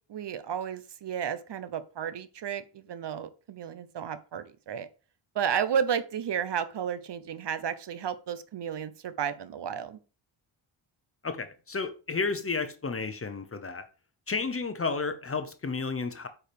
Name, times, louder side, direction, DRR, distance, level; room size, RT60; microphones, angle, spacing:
voice 1, 0.1-4.9 5.3-10.0, right 8 dB, 55° right, 0.9 m, -32 dB
voice 2, 11.2-13.8 14.3-16.3, left 4 dB, 30° left, 0.8 m, -32 dB
8.7 x 4.8 x 5.2 m
wide cardioid pair, 170°, 49 cm